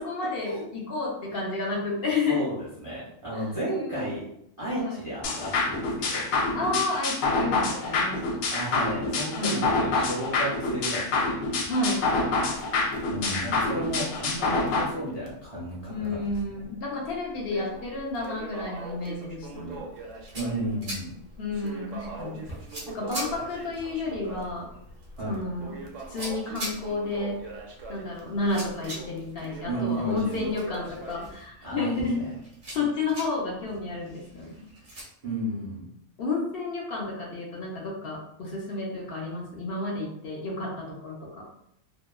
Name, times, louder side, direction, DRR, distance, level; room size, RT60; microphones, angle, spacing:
voice 1, 0.0-2.4 3.3-4.1 4.8-5.0 6.5-8.4 9.4-9.7 11.7-12.0 15.9-19.8 21.4-22.4 22.9-24.7 25.3-25.8 26.1-27.4 27.9-32.2 32.7-34.6 36.2-41.4, left 3 dB, 55° left, -2 dB, 0.8 m, -31 dB
voice 2, 2.3-4.2 4.6-6.3 8.5-11.3 13.1-16.2 20.3-21.1 25.2-25.4 29.7-30.5 31.6-32.3 35.2-35.8, right 1 dB, 30° right, -8 dB, 0.7 m, -32 dB
sound 1, 5.2-14.8, left 3 dB, 80° left, 1.0 m, -27 dB
Crackle, 11.8-14.4 14.7-14.8 15.3-15.4 16.0-16.7 17.0-31.3, right 2 dB, 70° right, 0.9 m, -42 dB
sound 2, 19.9-35.0, right 1 dB, 45° right, 1.1 m, -44 dB
2.8 x 2.2 x 2.2 m, 0.74 s
omnidirectional pair, 1.4 m